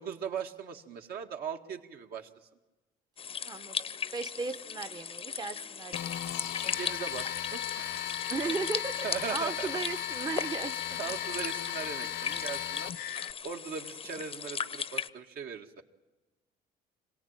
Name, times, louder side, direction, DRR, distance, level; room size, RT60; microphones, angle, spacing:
voice 1, 0.0-2.3 6.7-7.9 9.0-9.7 10.9-12.9 13.4-15.8, right 7 dB, 65° right, 4 dB, 2.0 m, -39 dB
sound 1, 3.2-15.1, left 7 dB, 35° left, 0.7 m, -38 dB
voice 2, 3.4-3.8 4.1-6.0 8.3-11.1, right 4 dB, 25° right, 7 dB, 0.9 m, -36 dB
sound 2, 5.9-13.3, left 12 dB, 65° left, 0.9 m, -36 dB
26.0 x 17.5 x 9.0 m, 1.1 s
cardioid pair, 110°, 17 cm